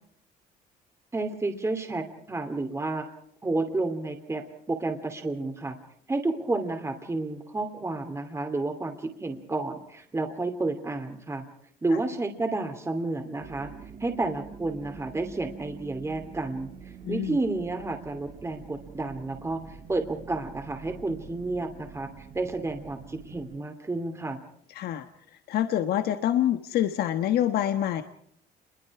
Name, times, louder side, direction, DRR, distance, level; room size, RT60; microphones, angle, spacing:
voice 1, 1.1-3.1 3.4-5.8 6.1-11.4 11.8-13.7 14.0-24.4, right 2 dB, 15° right, 6 dB, 2.6 m, -31 dB
sound 1, 13.4-23.6, right 6 dB, 40° right, 1.4 m, -46 dB
voice 2, 17.0-17.4 24.7-25.1 25.5-28.0, left 11 dB, 70° left, 7 dB, 1.3 m, -26 dB
28.0 x 22.5 x 4.8 m, 0.67 s
cardioid pair, 110°, 17 cm